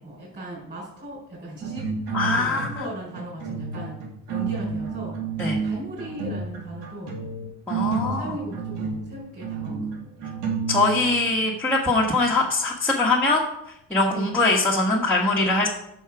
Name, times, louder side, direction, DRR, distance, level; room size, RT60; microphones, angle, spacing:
voice 1, 0.0-4.0 4.3-5.2 5.6-7.2 7.8-9.8 10.2-10.4 14.1-14.4, right 1 dB, 20° right, -7 dB, 4.6 m, -37 dB
sound 1, 1.6-2.9 3.2-11.3, right 5 dB, 75° right, 3.0 m, -30 dB
voice 2, 2.1-2.9 5.4-5.6 7.7-8.3 10.7-13.4 13.9-15.7, left 2 dB, 5° left, -6 dB, 1.4 m, -22 dB
11.0 x 6.5 x 4.8 m, 0.79 s
cardioid pair, 130°, 41 cm